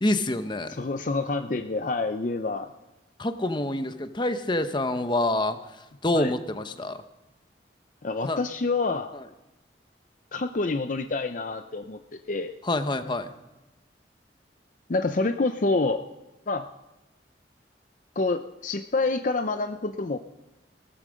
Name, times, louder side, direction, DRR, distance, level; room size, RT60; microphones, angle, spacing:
voice 1, 0.0-0.7 3.2-5.6 6.0-7.0 8.2-8.4 12.6-13.3, left 1 dB, 25° left, 9 dB, 0.9 m, -26 dB
voice 2, 0.7-2.7 6.1-6.3 8.0-9.1 10.3-12.5 14.9-16.0 16.5-16.6 18.2-20.2, left 3 dB, 45° left, 8 dB, 0.6 m, -27 dB
17.5 x 14.0 x 5.2 m, 1.0 s
head